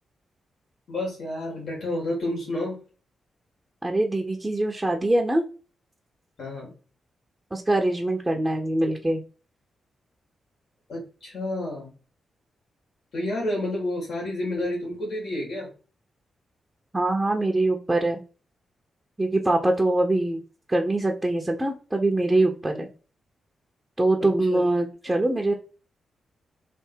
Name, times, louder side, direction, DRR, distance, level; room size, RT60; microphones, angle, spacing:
voice 1, 0.9-2.8 6.4-6.7 10.9-11.9 13.1-15.7 22.7-22.8 24.2-24.6 25.1-25.2, left 1 dB, 70° left, -3 dB, 2.0 m, -30 dB
voice 2, 3.8-5.4 7.5-9.2 16.9-18.2 19.2-20.4 20.7-22.9 24.0-25.5, right 2 dB, 15° right, 1 dB, 0.8 m, -23 dB
3.5 x 2.7 x 4.5 m, 0.36 s
supercardioid pair, 50°, 0 cm